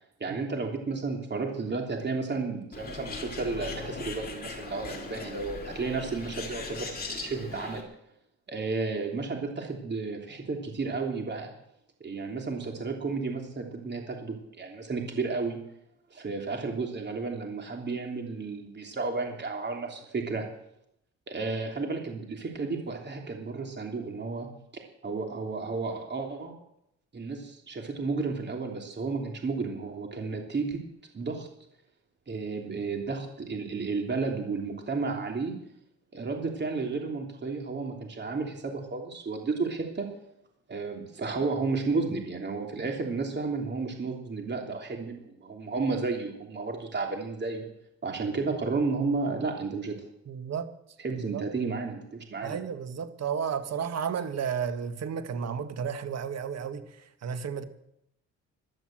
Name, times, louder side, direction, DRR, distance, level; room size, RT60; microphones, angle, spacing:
voice 1, 0.2-7.8 8.5-11.5 12.0-15.6 16.1-20.5 21.3-26.6 27.1-30.8 31.1-31.5 32.3-35.6 36.1-40.1 40.7-47.7 48.0-50.0 51.0-52.6, right 4 dB, 35° right, 3.2 m, -32 dB
Bird, 2.7-7.8, left 4 dB, 30° left, 4.4 m, -39 dB
voice 2, 50.3-50.7 51.1-51.4 52.4-57.6, right 7 dB, 60° right, 1.7 m, -33 dB
15.0 x 12.0 x 7.7 m
cardioid pair, 90°, 30 cm